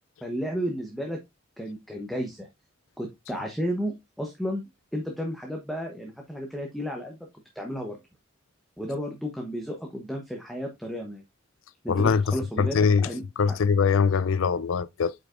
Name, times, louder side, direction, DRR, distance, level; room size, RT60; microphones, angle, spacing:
voice 1, 0.2-1.2 1.6-2.5 3.0-7.2 7.5-8.0 8.8-11.2 11.8-13.2 13.5-13.6, equal, ahead, 1.0 m, -33 dB
voice 2, 11.9-13.1 13.4-15.1, left 5 dB, 75° left, 0.4 m, -23 dB
8.1 x 5.3 x 2.5 m
head